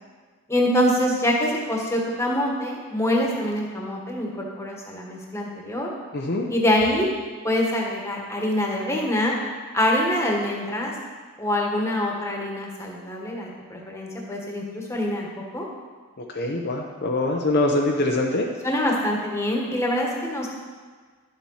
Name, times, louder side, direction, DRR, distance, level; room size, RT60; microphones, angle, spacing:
voice 1, 0.5-5.9 6.5-7.1 7.4-9.3 9.7-10.9 11.4-15.3 15.5-15.6 18.6-20.5, left 1 dB, 10° left, -1 dB, 1.5 m, -25 dB
voice 2, 6.1-6.5 16.2-18.5, left 2 dB, 45° left, 0 dB, 0.8 m, -24 dB
11.0 x 7.4 x 5.7 m, 1.5 s
head